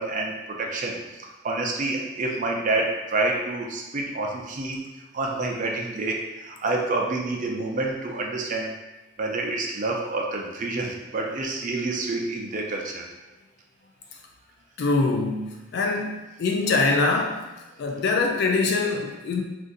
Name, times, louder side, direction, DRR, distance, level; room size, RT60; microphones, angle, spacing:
voice 1, 0.0-8.7 9.2-13.1, right 2 dB, 40° right, 0 dB, 0.4 m, -28 dB
voice 2, 14.8-17.4 17.8-19.4, left 3 dB, 55° left, 1 dB, 0.3 m, -24 dB
2.5 x 2.5 x 3.8 m, 1.1 s
head